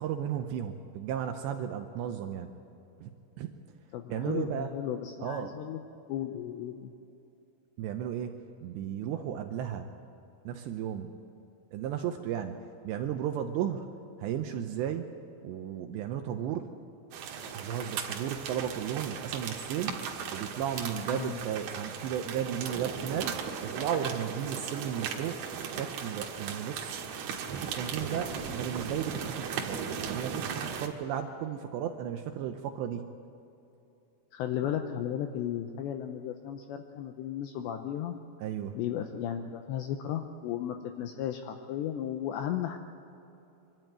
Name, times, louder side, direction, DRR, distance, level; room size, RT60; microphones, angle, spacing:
voice 1, 0.0-2.5 3.0-3.1 3.4-3.5 4.1-4.7 5.2-5.6 7.8-9.9 10.5-11.1 11.7-12.6 12.8-13.9 14.2-15.2 15.4-16.7 17.5-19.9 20.3-27.1 27.5-33.1 38.4-38.7, right 9 dB, 85° right, 5 dB, 2.5 m, -34 dB
voice 2, 3.9-5.8 6.1-6.9 20.9-21.4 34.3-38.2 38.7-42.8, left 10 dB, 85° left, 6 dB, 2.5 m, -35 dB
sound 1, 17.1-30.9, right 6 dB, 65° right, 2.9 m, -37 dB
24.5 x 12.5 x 9.1 m, 2.8 s
omnidirectional pair, 6.0 m